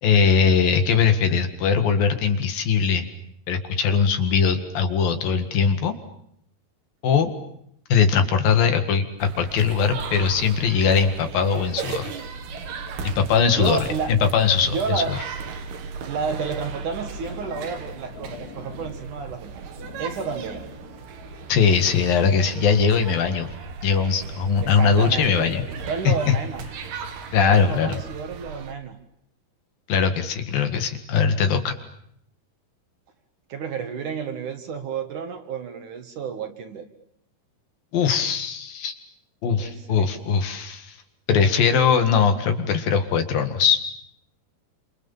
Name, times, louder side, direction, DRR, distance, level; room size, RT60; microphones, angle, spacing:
voice 1, 0.0-3.1 3.5-6.0 7.0-7.3 7.9-12.1 13.2-15.2 21.5-23.5 23.8-25.6 26.1-26.4 27.3-28.0 29.9-31.7 37.9-39.0 39.4-41.0 41.3-43.8, left 6 dB, 65° left, 8 dB, 3.5 m, -20 dB
sound 1, 9.2-28.7, right 5 dB, 70° right, 3.9 m, -37 dB
voice 2, 13.5-14.1 14.6-15.2 16.0-19.6 20.0-20.7 24.6-26.6 27.3-29.0 33.5-36.9 39.5-40.1, right 5 dB, 55° right, 7 dB, 2.8 m, -31 dB
sound 2, 16.8-21.7, left 7 dB, 85° left, 5.1 m, -45 dB
29.0 x 27.5 x 7.2 m, 0.72 s
omnidirectional pair, 4.7 m